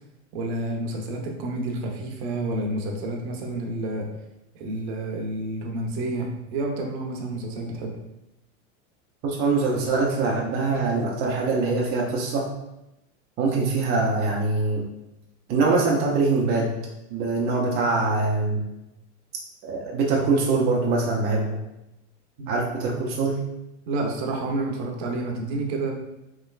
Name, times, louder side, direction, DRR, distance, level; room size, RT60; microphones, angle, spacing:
voice 1, 0.3-4.1 4.5-7.9 22.4-22.6 23.9-25.9, right 2 dB, 60° right, 1 dB, 0.7 m, -29 dB
voice 2, 9.2-12.5 13.4-14.8 15.5-16.7 17.1-18.6 19.6-21.6 22.5-23.4, right 3 dB, 30° right, -2 dB, 0.4 m, -23 dB
3.3 x 2.9 x 2.3 m, 0.91 s
supercardioid pair, 145°, 36 cm